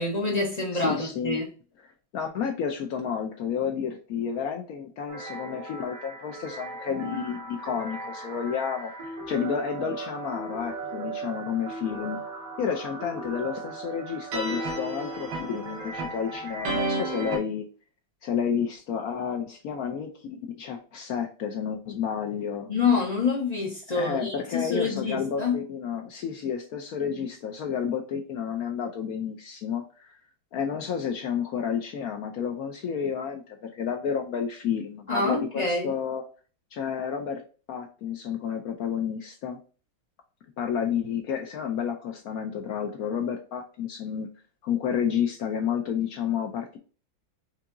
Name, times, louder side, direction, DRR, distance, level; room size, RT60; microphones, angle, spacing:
voice 1, 0.0-1.4 22.7-25.6 35.1-35.9, left 4 dB, 50° left, 0.4 m, -26 dB
voice 2, 0.7-1.4 2.1-12.2 12.6-17.7 18.2-22.7 23.9-30.2 30.5-36.2 36.7-37.4 37.7-39.6 40.6-44.3 44.6-46.8, left 7 dB, 70° left, 0.8 m, -31 dB
sound 1, 5.1-17.4, right 2 dB, 85° right, 1.8 m, -35 dB
4.8 x 2.8 x 2.5 m
omnidirectional pair, 2.2 m